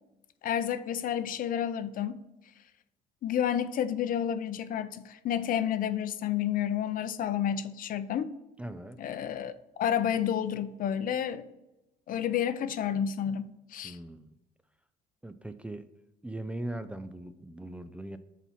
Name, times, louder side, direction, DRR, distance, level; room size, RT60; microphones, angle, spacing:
voice 1, 0.4-2.2 3.2-8.3 9.0-11.5 12.1-14.0, left 9 dB, 55° left, 0.6 m, -30 dB
voice 2, 8.6-9.0 13.8-14.4 15.2-15.9 16.2-18.2, right 1 dB, 5° right, 0.4 m, -40 dB
7.2 x 4.1 x 5.7 m
cardioid pair, 110°, 17 cm